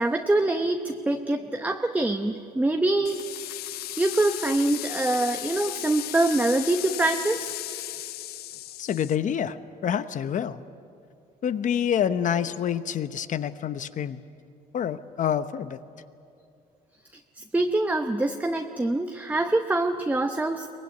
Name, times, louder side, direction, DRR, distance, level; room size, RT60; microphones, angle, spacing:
voice 1, 0.0-3.6 4.0-7.5 17.4-20.8, right 2 dB, 10° right, 5 dB, 0.9 m, -25 dB
sound 1, 3.0-9.2, left 14 dB, 70° left, 0.6 m, -35 dB
voice 2, 8.8-9.6 9.8-10.6 11.4-14.2 14.7-15.8, left 9 dB, 50° left, 12 dB, 1.0 m, -27 dB
23.5 x 19.5 x 9.5 m, 2.5 s
cardioid pair, 110°, 17 cm